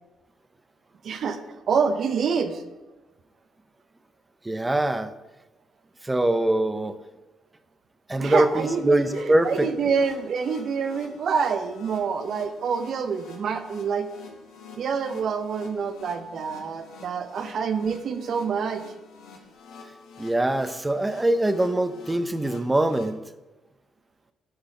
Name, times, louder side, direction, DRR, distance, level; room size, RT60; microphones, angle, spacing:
voice 1, 1.0-2.6 8.2-14.1 14.7-18.8, right 6 dB, 60° right, 10 dB, 0.7 m, -27 dB
voice 2, 4.4-5.1 6.0-7.0 8.1-9.7 20.2-23.2, right 1 dB, 15° right, 11 dB, 0.6 m, -23 dB
sound 1, 8.3-23.0, left 4 dB, 85° left, 1.6 m, -47 dB
10.5 x 4.0 x 5.0 m, 1.1 s
cardioid pair, 90°, 0 cm